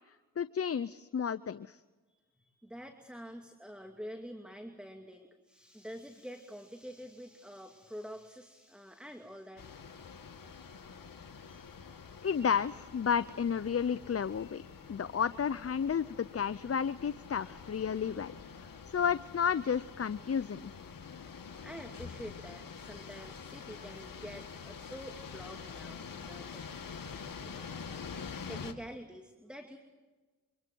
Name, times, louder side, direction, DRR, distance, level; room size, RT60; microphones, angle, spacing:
voice 1, 0.4-1.8 12.2-14.6 14.9-18.3 18.6-18.7 18.9-20.7, left 7 dB, 40° left, 16 dB, 0.7 m, -32 dB
voice 2, 2.1-9.6 21.6-26.6 27.3-28.1 28.5-29.8, equal, 5° right, 4 dB, 2.6 m, -47 dB
sound 1, 9.6-28.7, left 6 dB, 65° left, 2.3 m, -46 dB
27.5 x 25.0 x 4.6 m, 1.3 s
supercardioid pair, 45°, 37 cm